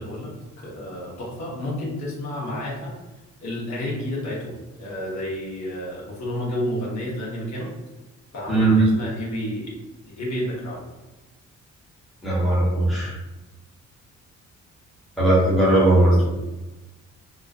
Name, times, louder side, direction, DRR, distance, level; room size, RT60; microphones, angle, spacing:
voice 1, 0.0-2.9 3.4-7.7 8.3-9.7 10.1-10.8 16.0-16.3, left 1 dB, 65° left, -4 dB, 0.9 m, -31 dB
voice 2, 8.5-8.9 12.2-13.2 15.2-16.2, right 2 dB, ahead, -6 dB, 0.8 m, -18 dB
2.3 x 2.3 x 2.3 m, 1.1 s
cardioid pair, 90°, 30 cm